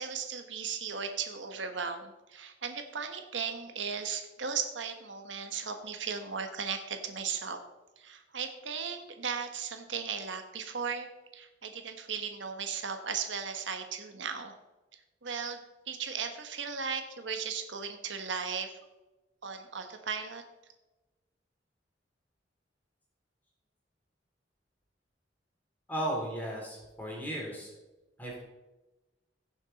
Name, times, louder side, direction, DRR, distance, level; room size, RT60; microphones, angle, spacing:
voice 1, 0.0-7.6 8.0-14.5 15.2-18.7 19.4-20.4, right 6 dB, 90° right, 6 dB, 1.3 m, -36 dB
voice 2, 25.9-27.7 28.2-28.4, right 1 dB, 10° left, -3 dB, 3.7 m, -35 dB
16.5 x 7.0 x 4.1 m, 1.1 s
head